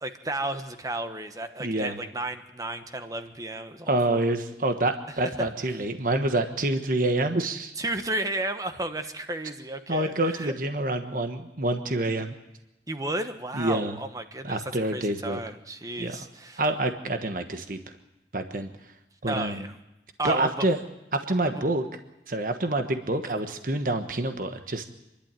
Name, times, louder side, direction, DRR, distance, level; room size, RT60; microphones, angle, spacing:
voice 1, 0.0-4.2 7.8-10.5 12.9-16.6 19.3-19.7 20.2-20.5, right 2 dB, 20° right, 8 dB, 1.3 m, -33 dB
voice 2, 1.6-2.0 3.9-7.7 9.9-12.3 13.5-14.0 14.4-15.4 16.0-16.2 16.6-17.8 18.3-18.7 19.2-19.6 20.2-20.8 21.1-21.8 22.3-24.9, right 2 dB, 50° right, 7 dB, 1.3 m, -27 dB
27.0 x 12.0 x 9.0 m, 0.93 s
head